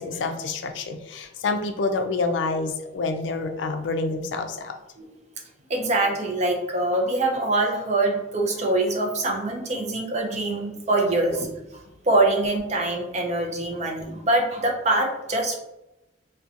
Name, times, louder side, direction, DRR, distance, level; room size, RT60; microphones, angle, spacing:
voice 1, 0.0-4.7, left 3 dB, 80° left, 6 dB, 0.4 m, -27 dB
voice 2, 5.7-11.5 12.0-15.6, right 2 dB, 40° right, 1 dB, 0.5 m, -24 dB
2.7 x 2.2 x 2.4 m, 0.93 s
head